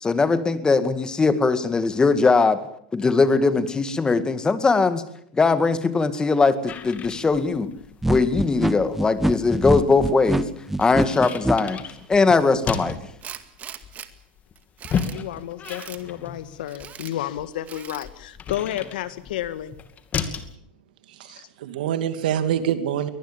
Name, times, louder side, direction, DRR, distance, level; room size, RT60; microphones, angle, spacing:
voice 1, 0.0-2.6 2.9-5.0 5.3-7.7 8.1-10.4 10.8-11.8 12.1-13.0, left 4 dB, 15° left, 11 dB, 2.1 m, -20 dB
sound 1, 6.7-20.5, left 7 dB, 30° left, 2.6 m, -35 dB
sound 2, 8.0-11.6, right 1 dB, 5° right, 1.3 m, -23 dB
Tools, 13.2-14.1 14.6-15.2 15.6-16.0 16.7-17.1 17.7-18.1, right 9 dB, 30° right, 2.1 m, -40 dB
voice 2, 15.1-19.8 21.3-21.4, left 12 dB, 75° left, 13 dB, 1.8 m, -31 dB
voice 3, 21.1-23.1, right 9 dB, 75° right, 10 dB, 2.6 m, -26 dB
23.5 x 19.0 x 7.2 m, 0.67 s
hypercardioid pair, 110°, 5 cm